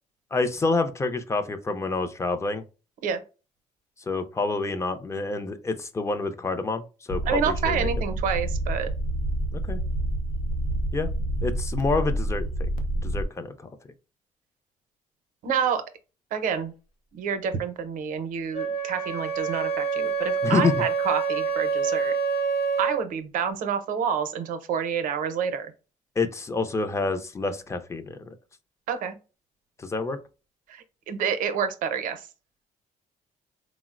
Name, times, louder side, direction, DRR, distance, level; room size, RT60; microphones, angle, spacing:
voice 1, 0.3-2.6 4.1-7.9 9.5-9.8 10.9-11.1 11.4-12.7 13.0-13.7 20.4-20.7 26.2-28.2 29.8-30.2, left 3 dB, 20° left, 0.4 m, -27 dB
sound 1, 7.1-13.2, right 1 dB, 90° left, 0.6 m, -28 dB
voice 2, 7.2-8.9 15.4-15.8 16.3-16.7 17.1-22.2 22.8-25.7 28.9-29.1 30.7-32.3, right 7 dB, 75° right, 0.6 m, -28 dB
Wind instrument woodwind instrument, 18.5-23.0, right 5 dB, 50° left, 0.8 m, -27 dB
3.7 x 2.0 x 2.4 m
cardioid pair, 120°, 14 cm